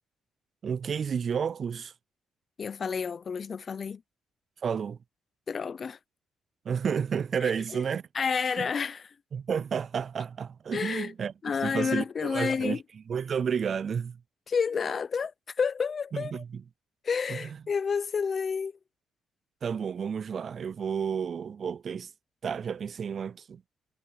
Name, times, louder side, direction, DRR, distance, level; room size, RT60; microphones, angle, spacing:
voice 1, 0.6-1.9 4.6-5.0 6.7-8.1 8.6-8.7 9.3-11.3 11.6-12.8 13.1-14.2 16.1-16.6 17.3-17.4 19.6-22.1 22.4-23.6, right 7 dB, 50° right, 0.3 m, -31 dB
voice 2, 2.6-4.0 5.5-6.0 7.4-7.8 8.1-9.1 10.7-11.1 11.4-12.8 14.5-15.3 15.6-16.4 17.0-18.7, left 6 dB, 45° left, 0.7 m, -30 dB
cardioid pair, 90°, 0 cm